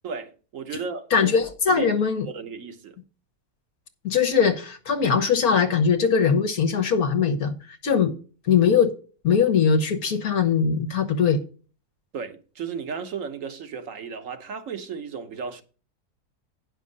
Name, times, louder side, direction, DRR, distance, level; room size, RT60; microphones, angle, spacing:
voice 1, 0.0-1.3 1.7-1.9 2.3-3.0 12.1-15.6, right 6 dB, 55° right, 1.4 m, -34 dB
voice 2, 1.1-2.3 4.0-7.5 7.8-8.1 8.5-8.9 9.2-11.4, left 6 dB, 65° left, 1.6 m, -21 dB
9.9 x 6.4 x 5.3 m
omnidirectional pair, 1.7 m